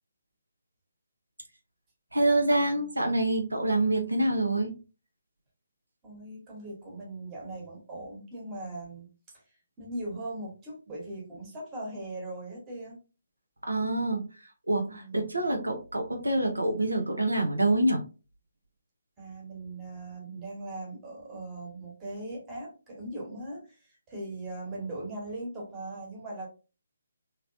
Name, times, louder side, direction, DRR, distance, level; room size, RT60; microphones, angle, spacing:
voice 1, 2.1-4.7 13.7-14.2 14.7-18.0, right 2 dB, 75° right, 3 dB, 0.8 m, -26 dB
voice 2, 6.0-13.0 14.9-15.3 19.2-26.5, right 2 dB, 20° right, -3 dB, 1.4 m, -40 dB
3.1 x 3.0 x 2.6 m, 0.33 s
figure-of-eight pair, 140°, 0 cm